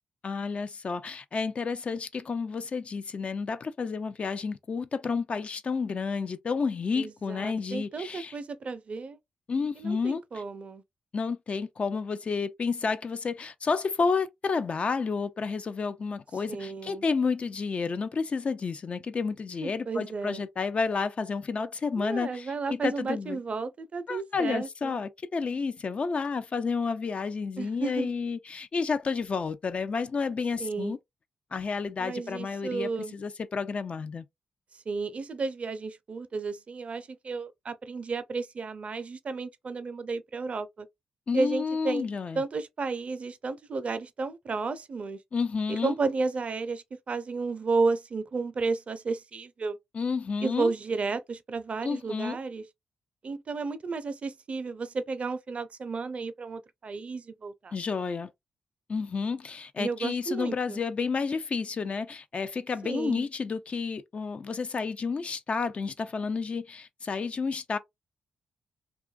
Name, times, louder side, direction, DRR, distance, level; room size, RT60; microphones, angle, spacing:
voice 1, 0.2-8.3 9.5-10.2 11.1-23.4 24.1-31.0 31.5-34.3 41.3-42.4 45.3-45.9 49.9-50.7 51.8-52.4 57.7-58.3 58.9-67.8, left 5 dB, 45° left, 0.4 m, -30 dB
voice 2, 7.0-9.2 9.8-10.8 16.5-17.1 19.6-20.4 22.0-25.0 27.6-28.1 30.6-31.0 32.0-33.1 34.9-40.9 41.3-42.0 42.3-45.2 45.7-49.8 50.4-52.6 53.2-57.7 59.8-60.8 62.8-63.3, right 4 dB, 50° right, 0.4 m, -32 dB
2.5 x 2.3 x 2.3 m
supercardioid pair, 45°, 3 cm